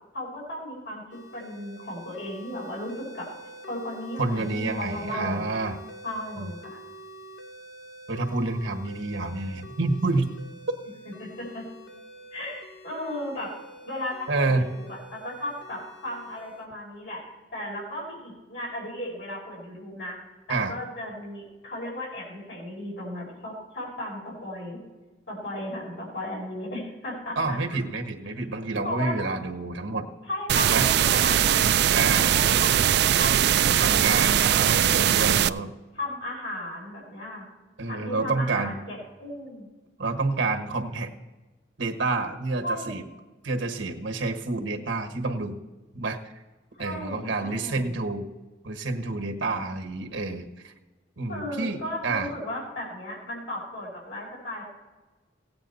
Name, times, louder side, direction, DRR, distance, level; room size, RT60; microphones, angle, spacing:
voice 1, 0.1-1.0 1.3-3.3 3.7-5.4 6.0-6.8 11.2-11.6 12.3-13.5 13.8-20.2 20.5-24.8 25.3-27.6 28.8-29.2 30.2-35.5 35.9-37.5 37.8-39.7 42.6-43.0 46.7-48.0 51.3-54.6, left 1 dB, 80° left, -4 dB, 4.7 m, -35 dB
sound 1, 1.1-16.7, right 1 dB, 60° left, 0.9 m, -46 dB
voice 2, 4.2-5.8 6.4-6.5 8.1-10.3 14.3-14.7 20.5-20.7 27.3-30.1 30.6-30.9 31.9-32.4 33.8-35.7 37.8-38.7 40.0-41.1 41.8-43.0 43.4-45.6 45.9-46.3 46.8-48.3 48.6-50.7 51.2-52.3, right 3 dB, 90° right, 5 dB, 1.4 m, -28 dB
sound 2, 30.5-35.5, right 10 dB, 60° right, 0.4 m, -21 dB
16.5 x 8.9 x 4.2 m, 1.2 s
head